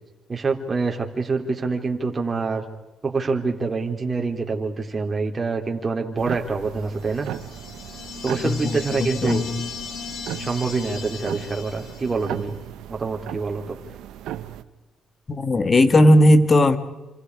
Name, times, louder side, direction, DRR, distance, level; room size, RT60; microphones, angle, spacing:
voice 1, 0.3-2.6 3.0-7.3 8.2-9.4 10.4-12.6 12.9-13.8, right 4 dB, 30° right, 1 dB, 3.8 m, -26 dB
sound 1, 6.2-14.6, right 12 dB, 90° right, 1.1 m, -36 dB
sound 2, 7.0-12.4, left 6 dB, 70° left, 3.1 m, -37 dB
voice 2, 9.0-9.5 15.3-16.8, left 1 dB, 35° left, 10 dB, 2.0 m, -16 dB
28.5 x 26.5 x 4.9 m, 1.0 s
cardioid pair, 90°, 0 cm